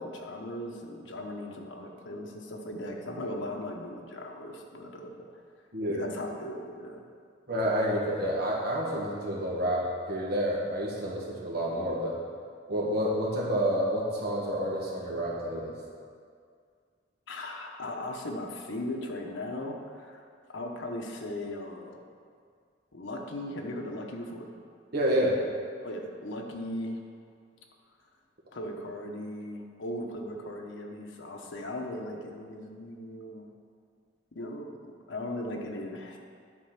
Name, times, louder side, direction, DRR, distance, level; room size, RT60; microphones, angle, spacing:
voice 1, 0.0-5.2 5.9-7.1 17.3-20.2 20.5-22.0 22.9-24.5 25.8-27.0 28.5-33.5 34.3-36.2, left 1 dB, 90° left, 1 dB, 1.0 m, -38 dB
voice 2, 5.7-6.0 7.5-12.2 12.7-15.7 24.9-25.3, equal, 60° right, -4 dB, 1.8 m, -29 dB
9.7 x 4.5 x 5.9 m, 2.2 s
head